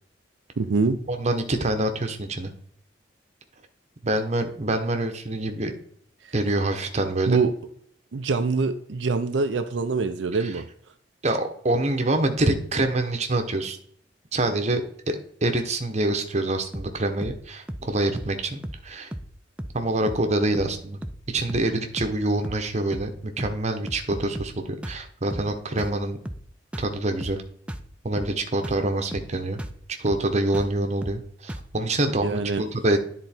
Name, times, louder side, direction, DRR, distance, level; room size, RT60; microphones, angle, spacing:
voice 1, 0.6-1.0 6.2-6.3 7.3-7.5 8.1-10.6 32.2-32.6, right 4 dB, 80° right, 7 dB, 0.5 m, -24 dB
voice 2, 1.1-2.5 4.0-5.7 6.3-7.4 10.4-10.5 11.2-13.8 14.3-14.8 15.4-19.1 19.7-21.0 21.3-26.2 26.8-27.4 28.0-29.6 30.0-33.0, right 2 dB, 40° right, 6 dB, 1.0 m, -26 dB
sound 1, 16.7-17.0 17.2-17.4 17.7-17.9 18.2-18.4 18.6-18.9 19.1-19.3 19.6-19.8 20.1-20.3 20.5-20.8 21.0-21.2 21.5-21.7 22.0-22.2 22.4-22.7 22.9-23.1 23.4-23.6 23.9-24.6 24.8-25.0 25.3-25.5 25.8-26.0 26.3-26.5 26.7-27.0 27.2-27.4 27.7-27.9 28.2-28.4 28.6-28.9 29.1-29.3 29.6-29.8 30.1-30.3 30.5-30.8 31.0-31.2 31.5-31.7, equal, 5° right, 0.5 m, -36 dB
10.0 x 3.9 x 4.3 m, 0.65 s
head